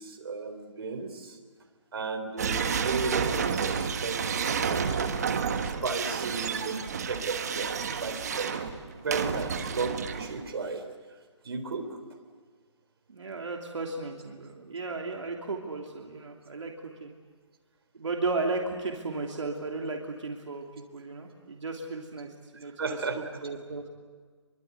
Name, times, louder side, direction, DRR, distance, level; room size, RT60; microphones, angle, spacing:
voice 1, 0.0-1.4 1.9-5.1 5.8-6.7 7.1-10.9 11.4-12.0 22.5-23.2, right 4 dB, 55° right, 5 dB, 3.8 m, -34 dB
sound 1, 2.4-10.5, right 6 dB, 35° right, 1.4 m, -30 dB
voice 2, 13.1-16.7 17.0-17.2 17.9-20.6 20.9-22.7 23.4-23.8, right 3 dB, 75° right, 1 dB, 3.0 m, -34 dB
25.0 x 24.0 x 8.2 m, 1.5 s
hypercardioid pair, 175°, 16 cm